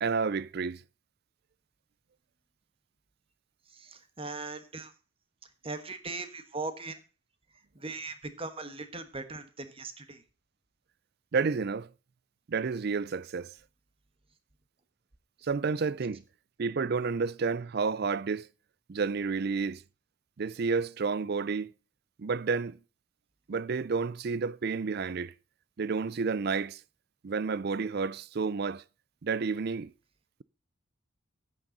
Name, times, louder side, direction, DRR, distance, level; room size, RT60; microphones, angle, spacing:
voice 1, 0.0-0.8 11.3-11.9 12.5-13.5 15.4-16.2 16.6-18.5 18.9-19.8 20.4-21.7 22.2-22.8 23.5-25.3 25.8-26.8 27.2-28.8 29.2-29.9, right 5 dB, 50° right, 0.4 m, -30 dB
voice 2, 3.7-4.9 5.6-7.0 7.7-10.2, right 3 dB, 25° right, 1.3 m, -39 dB
13.0 x 9.0 x 3.9 m
head